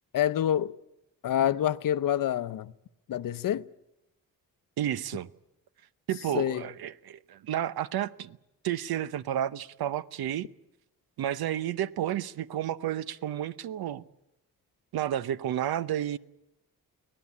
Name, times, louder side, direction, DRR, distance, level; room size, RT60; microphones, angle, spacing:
voice 1, 0.1-0.7 1.2-2.7 3.1-3.6 6.3-6.7, left 11 dB, 60° left, 0.7 m, -27 dB
voice 2, 4.8-5.3 6.1-8.4 8.6-10.5 11.2-14.0 14.9-16.2, right 11 dB, 85° right, 0.8 m, -31 dB
24.0 x 18.0 x 8.4 m
cardioid pair, 130°, 36 cm